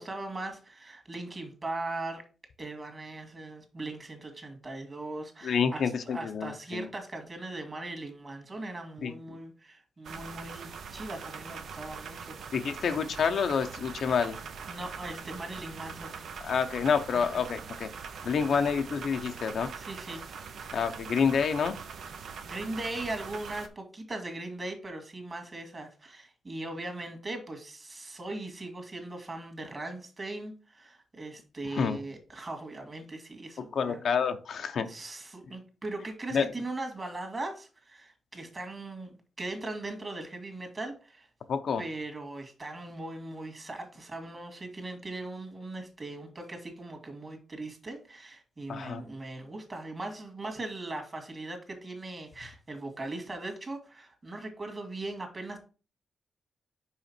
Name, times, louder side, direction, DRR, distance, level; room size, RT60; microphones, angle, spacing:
voice 1, 0.0-2.2 2.6-12.4 14.7-16.1 17.1-17.3 18.2-18.4 19.8-20.2 20.6-20.9 22.4-34.0 34.8-41.3 41.8-55.6, right 2 dB, 35° right, 5 dB, 2.0 m, -39 dB
voice 2, 5.4-6.9 9.0-9.4 12.5-14.4 16.4-17.9 18.2-19.7 20.7-21.7 31.7-32.0 33.7-34.9 36.3-36.5 41.5-41.8 48.7-49.0, left 6 dB, 70° left, 8 dB, 0.7 m, -28 dB
sound 1, 10.0-23.7, right 6 dB, 75° right, 0.7 m, -42 dB
5.6 x 5.0 x 4.3 m, 0.36 s
cardioid pair, 90°, 0 cm